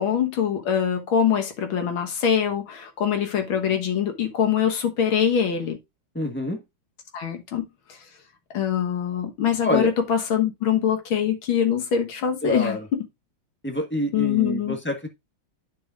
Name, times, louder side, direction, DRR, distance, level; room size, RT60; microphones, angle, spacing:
voice 1, 0.0-5.8 7.1-8.0 8.5-12.8 14.1-14.8, left 8 dB, 85° left, 2.1 m, -23 dB
voice 2, 6.1-6.6 9.6-9.9 12.4-12.9 13.6-15.1, left 1 dB, 5° left, 1.3 m, -26 dB
10.0 x 6.7 x 2.5 m
omnidirectional pair, 2.2 m